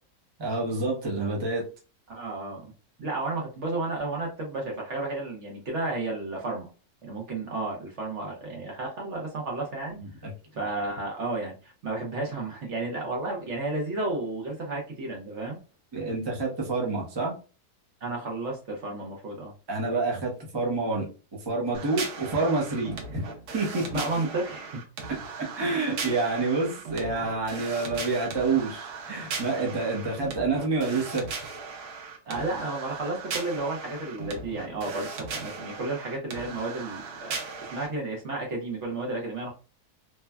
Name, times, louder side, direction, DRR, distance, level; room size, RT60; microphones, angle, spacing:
voice 1, 0.4-1.6 10.0-10.1 15.9-17.3 19.7-21.1 21.4-23.2 23.5-23.8 25.4-31.2, right 3 dB, 25° right, -2 dB, 0.5 m, -28 dB
voice 2, 2.1-2.6 3.0-6.7 7.0-10.0 10.5-15.6 18.0-19.5 23.9-24.8 32.2-39.5, right 2 dB, 55° right, -1 dB, 0.9 m, -32 dB
sound 1, 21.7-37.9, right 4 dB, 90° right, 1.3 m, -38 dB
3.2 x 2.1 x 2.3 m, 0.33 s
omnidirectional pair, 1.7 m